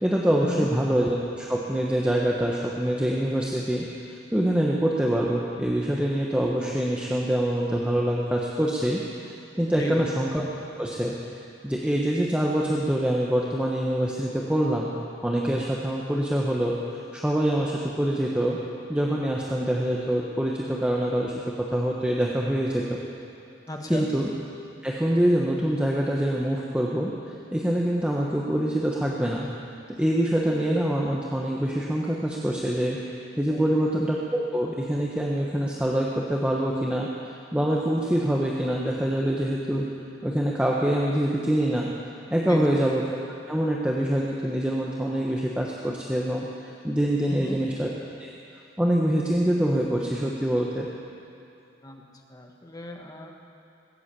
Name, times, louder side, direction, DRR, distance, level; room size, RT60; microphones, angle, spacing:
voice 1, 0.0-10.4 10.8-11.1 11.6-14.9 15.2-18.6 18.9-23.0 23.9-24.3 24.8-27.1 27.5-29.5 30.0-33.0 33.4-39.9 40.2-41.9 42.3-43.0 43.5-47.9 48.2-48.3 48.8-50.9, right 1 dB, 5° right, -3 dB, 1.1 m, -25 dB
voice 2, 9.7-10.0 23.7-24.1 33.5-33.8 42.5-42.6 47.3-47.6 51.8-52.0 52.3-53.3, left 1 dB, 20° left, 1 dB, 1.5 m, -34 dB
20.0 x 8.4 x 8.4 m, 2.7 s
head